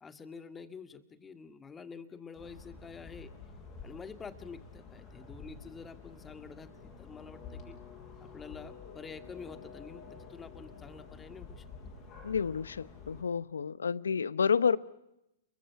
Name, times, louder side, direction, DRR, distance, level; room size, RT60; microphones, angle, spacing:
voice 1, 0.0-3.3 3.8-7.8 8.2-11.6, left 5 dB, 15° left, 9 dB, 1.9 m, -48 dB
sound 1, 2.4-13.2, left 5 dB, 35° left, 6.1 m, -49 dB
voice 2, 12.2-14.8, left 6 dB, 85° left, 18 dB, 0.9 m, -29 dB
30.0 x 22.5 x 5.8 m, 0.87 s
hypercardioid pair, 115°, 0 cm